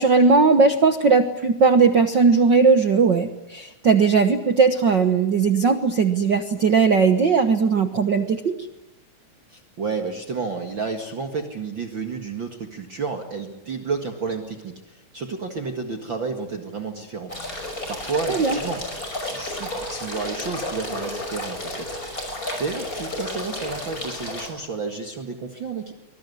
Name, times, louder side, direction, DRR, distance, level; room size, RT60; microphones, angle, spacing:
voice 1, 0.0-8.5 18.3-18.6, right 5 dB, 60° right, 8 dB, 1.2 m, -18 dB
voice 2, 9.5-17.3 17.9-18.8 19.2-21.9 22.6-25.9, right 4 dB, 40° right, 5 dB, 2.2 m, -31 dB
sound 1, 17.3-24.5, left 1 dB, 25° left, 5.9 m, -32 dB
25.0 x 22.0 x 9.6 m, 1.0 s
omnidirectional pair, 3.7 m